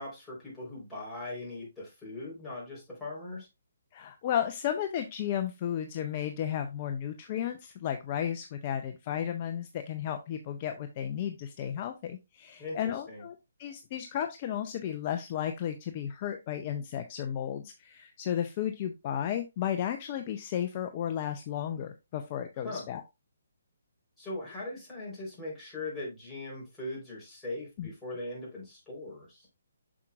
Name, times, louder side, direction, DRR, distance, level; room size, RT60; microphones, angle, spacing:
voice 1, 0.0-3.5 12.6-13.2 22.6-22.9 24.2-29.5, left 2 dB, 5° left, -7 dB, 3.9 m, -40 dB
voice 2, 3.9-23.0 27.8-27.9, left 10 dB, 35° left, 7 dB, 0.6 m, -33 dB
7.3 x 6.0 x 2.4 m, 0.23 s
figure-of-eight pair, 140°, 0 cm